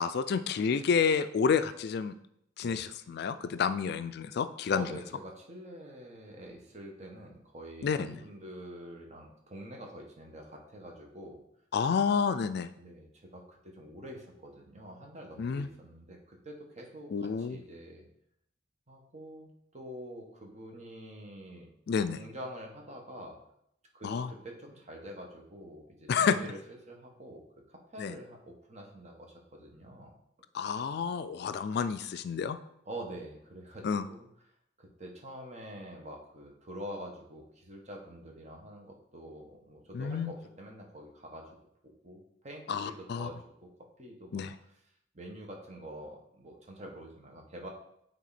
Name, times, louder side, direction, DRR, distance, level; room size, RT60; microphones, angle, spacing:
voice 1, 0.0-2.2 2.6-4.9 7.8-8.2 11.7-12.7 15.4-15.7 17.1-17.6 21.9-22.2 24.0-24.3 26.1-26.4 28.0-28.1 30.5-32.6 33.8-34.1 39.9-40.3 42.7-43.3 44.3-44.5, left 6 dB, 60° left, 12 dB, 0.3 m, -29 dB
voice 2, 4.7-11.4 12.8-18.0 18.9-21.7 22.2-23.4 23.9-26.6 26.9-27.4 27.7-29.3 29.6-30.1 32.8-34.3 34.8-41.5 41.8-44.5 45.1-47.7, right 1 dB, 40° right, 1 dB, 1.3 m, -46 dB
9.2 x 3.5 x 4.2 m, 0.74 s
head